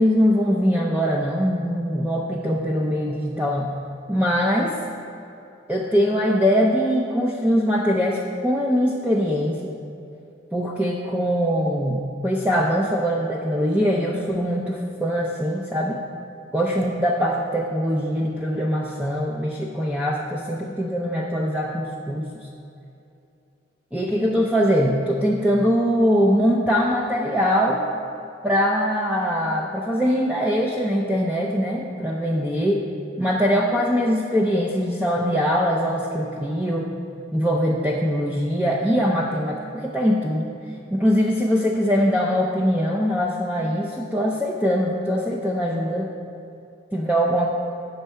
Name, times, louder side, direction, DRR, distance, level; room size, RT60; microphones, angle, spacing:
voice 1, 0.0-3.7 4.1-4.7 5.7-9.7 10.5-16.0 16.5-22.3 23.9-27.9 28.4-32.9 33.2-36.9 37.3-40.5 40.9-46.1 46.9-47.5, equal, 5° right, -3 dB, 0.5 m, -22 dB
9.3 x 6.4 x 4.4 m, 2.7 s
head